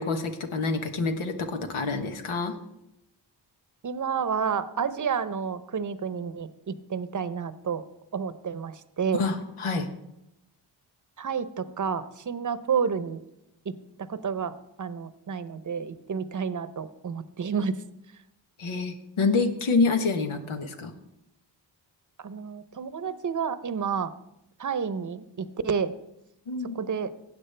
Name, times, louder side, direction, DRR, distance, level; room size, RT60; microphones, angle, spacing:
voice 1, 0.0-2.5 9.1-9.9 18.6-20.9 26.5-26.8, left 4 dB, 90° left, 5 dB, 1.1 m, -27 dB
voice 2, 3.8-7.8 8.1-9.2 11.2-13.2 13.6-17.8 22.2-24.1 24.6-25.9 26.7-27.1, right 6 dB, 40° right, 13 dB, 0.8 m, -30 dB
15.5 x 8.4 x 3.3 m, 0.85 s
cardioid pair, 45°, 48 cm